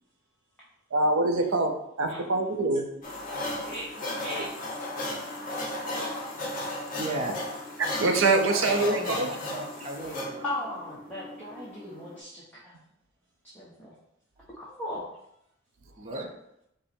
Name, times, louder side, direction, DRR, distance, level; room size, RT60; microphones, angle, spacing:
voice 1, 0.9-3.0 7.9-9.3, right 2 dB, 70° right, 5 dB, 0.6 m, -24 dB
voice 2, 2.1-2.8 3.6-4.5 5.9-6.5 7.0-7.6 8.5-10.5 16.0-16.4, right 1 dB, 30° right, 0 dB, 0.7 m, -38 dB
sound 1, 3.0-12.2, left 1 dB, 40° left, 0.9 m, -35 dB
voice 3, 10.4-12.7 13.5-13.9 14.6-15.1, left 1 dB, 10° left, -8 dB, 0.8 m, -37 dB
5.3 x 2.1 x 4.3 m, 0.78 s
head